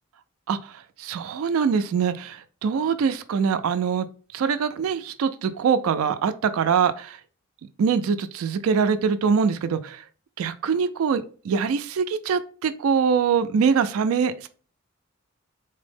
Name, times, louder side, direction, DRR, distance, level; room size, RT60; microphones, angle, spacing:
voice 1, 1.0-4.1 4.3-7.2 7.8-10.0 10.4-14.5, right 6 dB, 90° right, 11 dB, 0.3 m, -23 dB
3.9 x 2.0 x 3.3 m, 0.40 s
head